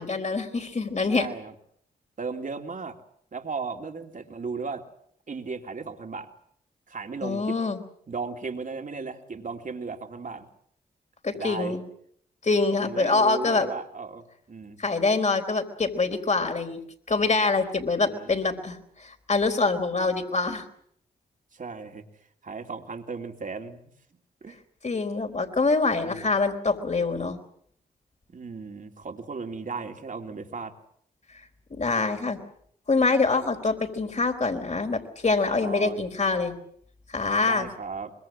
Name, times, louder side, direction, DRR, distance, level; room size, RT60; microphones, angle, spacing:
voice 1, 0.0-1.3 7.2-7.8 11.2-11.8 12.4-13.7 14.8-16.8 17.1-20.6 24.8-27.4 31.7-32.4 32.9-36.6 37.1-37.7, left 3 dB, 45° left, 6 dB, 4.2 m, -25 dB
voice 2, 1.1-1.5 2.2-3.0 3.3-4.8 5.3-6.3 6.9-7.5 8.1-10.5 11.3-11.7 12.8-14.8 18.1-18.3 21.5-22.0 22.4-23.9 24.4-24.6 26.0-26.2 28.3-30.7 35.6-36.0 37.3-38.1, right 4 dB, 50° right, 4 dB, 3.1 m, -36 dB
24.5 x 22.0 x 7.5 m, 0.67 s
cardioid pair, 50°, 17 cm